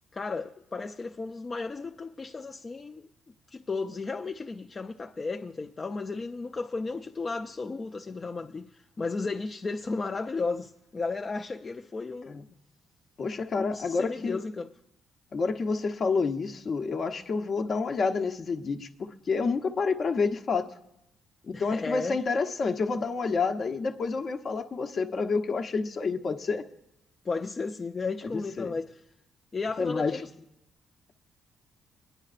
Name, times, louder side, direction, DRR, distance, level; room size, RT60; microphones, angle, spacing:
voice 1, 0.1-3.1 3.5-12.4 13.5-14.7 21.5-22.2 27.2-29.0 29.5-30.3, left 3 dB, 30° left, 0.4 m, -34 dB
voice 2, 13.2-14.4 15.3-20.7 21.5-26.6 28.3-28.8 29.8-30.2, left 4 dB, 50° left, 0.9 m, -29 dB
24.5 x 9.8 x 2.5 m
cardioid pair, 90°, 0 cm